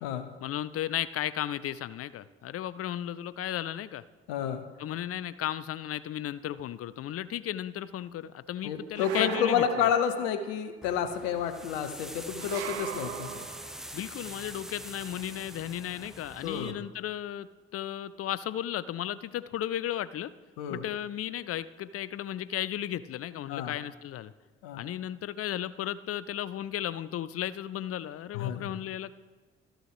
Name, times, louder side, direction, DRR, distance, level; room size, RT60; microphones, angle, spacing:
voice 1, 0.4-4.0 4.8-9.9 13.9-20.3 20.7-24.3 24.8-29.1, left 11 dB, 45° left, 17 dB, 0.5 m, -35 dB
voice 2, 4.3-4.6 8.6-13.5 16.4-16.7 20.6-20.8 23.5-23.8 24.6-24.8 28.3-28.7, left 8 dB, 80° left, 9 dB, 0.8 m, -30 dB
sound 1, 9.0-10.6 12.4-13.8, right 11 dB, 85° right, 0.5 m, -39 dB
sound 2, 10.8-16.7, equal, ahead, 0.8 m, -44 dB
12.5 x 6.4 x 4.8 m, 1.3 s
hypercardioid pair, 45°, 32 cm